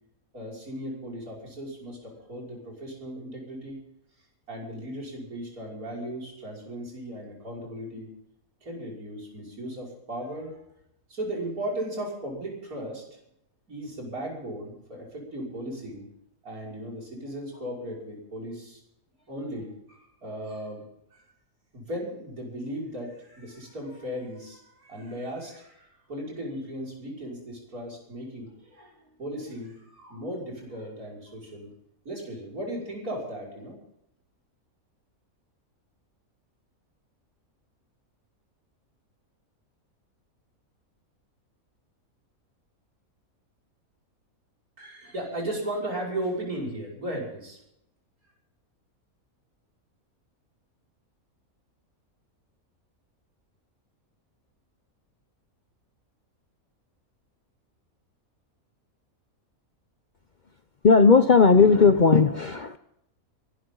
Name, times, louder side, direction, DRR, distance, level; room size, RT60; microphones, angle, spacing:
voice 1, 0.3-3.8 4.5-8.1 8.6-10.6 11.1-13.1 13.7-16.1 16.4-18.8 19.3-20.8 21.1-21.2 21.7-31.7 32.0-33.8 44.8-47.6, right 1 dB, 90° right, 0 dB, 6.2 m, -36 dB
voice 2, 60.8-62.8, left 5 dB, 45° left, 10 dB, 0.6 m, -16 dB
23.5 x 13.0 x 3.9 m, 0.78 s
omnidirectional pair, 1.5 m